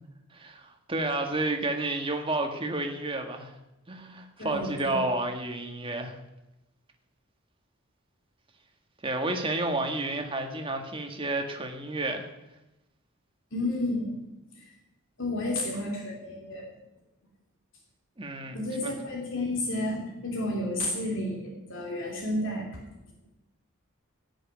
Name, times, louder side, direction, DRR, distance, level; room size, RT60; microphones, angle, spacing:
voice 1, 0.3-3.5 3.9-6.2 9.0-12.3 18.2-18.6 18.8-18.9, right 2 dB, 25° right, 4 dB, 1.6 m, -31 dB
voice 2, 4.4-5.0 13.5-14.2 14.6-14.7 15.2-16.7 18.5-22.7, left 1 dB, 65° left, 0 dB, 2.8 m, -31 dB
16.5 x 6.5 x 9.3 m, 0.96 s
head